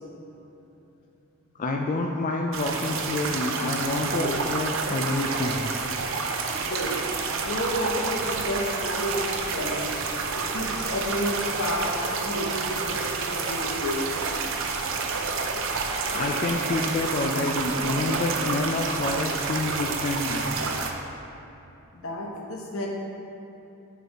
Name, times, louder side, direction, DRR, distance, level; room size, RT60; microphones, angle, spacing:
voice 1, 1.6-5.6 16.1-20.5, left 2 dB, 40° left, 1 dB, 0.4 m, -28 dB
sound 1, 2.5-20.9, right 4 dB, 65° right, 0.5 m, -29 dB
voice 2, 6.6-6.9 7.4-9.9 10.3-14.0 21.9-22.9, left 1 dB, 80° left, 0 dB, 1.0 m, -31 dB
6.7 x 4.3 x 4.8 m, 2.9 s
head